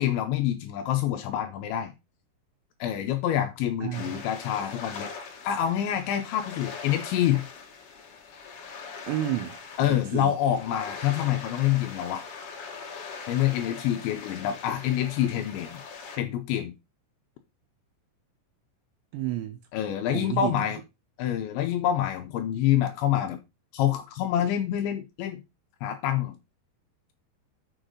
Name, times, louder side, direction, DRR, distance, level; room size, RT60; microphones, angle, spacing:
voice 1, 0.0-1.9 2.8-5.1 5.4-7.5 9.8-12.3 13.3-15.8 16.2-16.7 19.7-20.8 21.2-23.4 23.7-25.4 25.8-26.4, left 11 dB, 85° left, 2.7 m, -26 dB
voice 2, 3.8-4.2 9.1-10.3 19.1-19.6 20.1-20.7, right 12 dB, 80° right, 2.6 m, -31 dB
sound 1, 3.9-16.2, left 5 dB, 65° left, 2.2 m, -41 dB
7.1 x 6.5 x 3.8 m
omnidirectional pair, 5.9 m